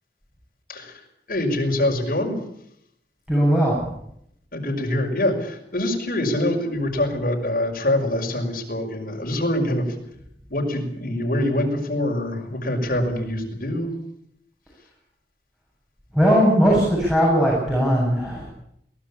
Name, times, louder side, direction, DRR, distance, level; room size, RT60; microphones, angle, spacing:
voice 1, 0.7-1.0 1.3-2.4 4.5-10.0 10.5-14.0, left 1 dB, 50° left, 1 dB, 5.8 m, -24 dB
voice 2, 3.3-3.8 16.1-18.5, equal, 5° right, -5 dB, 7.7 m, -18 dB
23.0 x 18.0 x 8.6 m, 0.74 s
head